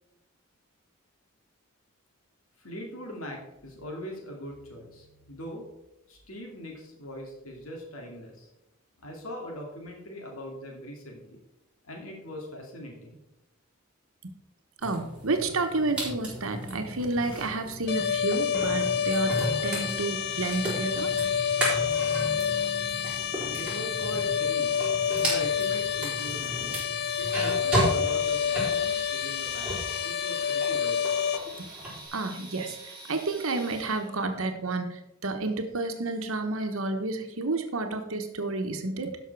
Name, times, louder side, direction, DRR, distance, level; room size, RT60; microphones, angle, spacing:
voice 1, 2.6-5.7 6.1-8.5 9.0-11.4 11.9-13.2 23.5-26.6 27.2-31.1, equal, 80° left, 0 dB, 2.3 m, -41 dB
sound 1, 14.8-29.9 30.3-32.0, right 1 dB, 5° right, 4.3 m, -34 dB
voice 2, 14.8-21.2 32.1-32.8 33.1-39.2, right 3 dB, 75° right, 6 dB, 1.1 m, -30 dB
sound 2, 17.9-31.4, left 8 dB, 45° left, 0.5 m, -28 dB
sound 3, 19.6-34.3, right 2 dB, 20° right, 3.0 m, -47 dB
12.0 x 5.9 x 4.7 m, 0.89 s
head